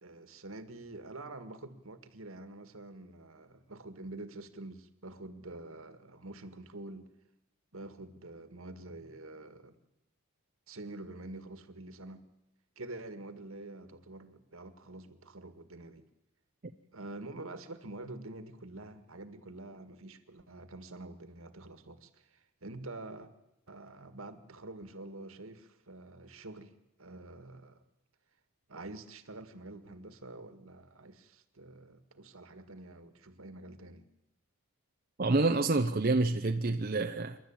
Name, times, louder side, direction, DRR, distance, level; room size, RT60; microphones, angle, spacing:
voice 1, 0.0-7.1 7.7-9.8 10.7-12.2 12.8-16.1 16.9-23.3 23.7-26.7 27.0-27.8 28.7-34.1, right 2 dB, 70° right, 1.8 m, -47 dB
voice 2, 35.2-37.4, right 2 dB, 40° right, 0.8 m, -28 dB
27.5 x 12.0 x 8.9 m
head